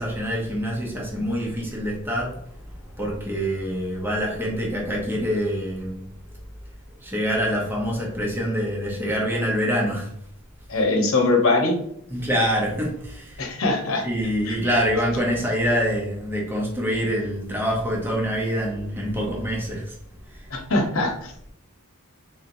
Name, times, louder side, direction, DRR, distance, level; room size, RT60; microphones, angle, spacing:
voice 1, 0.0-2.4 3.0-6.0 7.0-10.1 12.1-13.5 14.0-19.9 20.3-20.5, equal, 10° right, -3 dB, 0.7 m, -25 dB
voice 2, 10.7-11.8 13.4-14.1 14.4-14.6 20.5-21.5, left 2 dB, 65° left, 1 dB, 0.9 m, -22 dB
3.8 x 2.8 x 2.6 m, 0.71 s
head